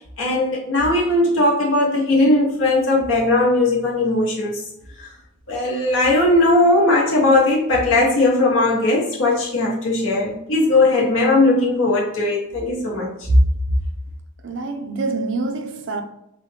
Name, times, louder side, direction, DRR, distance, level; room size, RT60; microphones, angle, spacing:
voice 1, 0.2-4.6 5.5-13.4, left 2 dB, 65° left, 0.8 m, -18 dB
voice 2, 14.4-16.0, right 3 dB, 60° right, 0.5 m, -26 dB
3.9 x 2.1 x 3.2 m
head